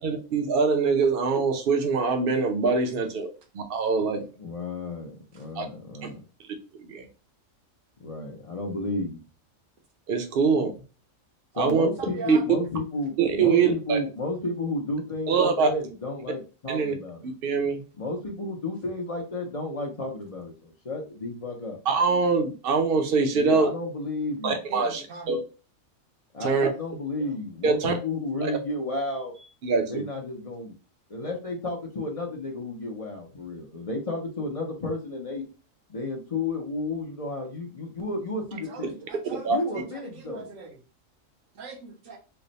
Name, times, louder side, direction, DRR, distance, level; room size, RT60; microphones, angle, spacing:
voice 1, 0.0-3.3 3.5-4.2 5.6-5.7 6.9-7.0 10.1-10.7 11.6-11.9 12.3-12.4 13.2-14.0 15.3-15.7 16.7-16.9 17.4-17.8 21.9-23.7 24.4-25.4 26.4-26.7 27.6-27.9 29.6-29.9 39.4-39.6, right 5 dB, 55° right, 0.8 m, -23 dB
voice 2, 4.4-6.2 8.0-9.2 11.5-17.2 18.0-21.8 23.3-24.6 26.3-29.3 29.9-30.7 31.1-35.4 35.9-39.1 39.5-40.5, left 2 dB, 45° left, 0.5 m, -32 dB
voice 3, 11.8-12.5 24.7-25.3 27.2-27.3 38.7-40.8 41.5-42.2, right 3 dB, 75° right, 1.3 m, -40 dB
3.3 x 2.1 x 3.9 m
omnidirectional pair, 1.4 m